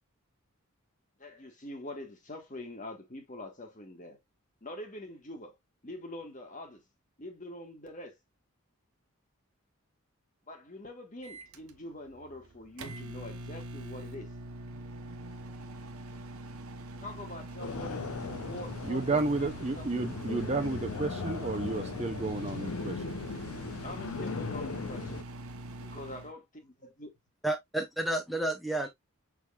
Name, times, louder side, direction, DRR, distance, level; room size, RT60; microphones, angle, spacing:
voice 1, 1.2-4.2 4.6-5.6 5.8-6.8 7.2-8.2 10.5-14.3 17.0-19.5 19.8-20.1 23.8-25.2 25.8-27.1, left 1 dB, 35° left, 1.5 m, -44 dB
Microwave oven, 11.2-26.3, right 2 dB, 80° right, 0.9 m, -44 dB
sound 1, 17.6-25.2, left 4 dB, 80° left, 0.5 m, -38 dB
voice 2, 18.8-23.2, right 3 dB, 30° right, 0.5 m, -32 dB
voice 3, 27.4-28.9, right 1 dB, ahead, 0.8 m, -31 dB
6.2 x 3.6 x 2.3 m
head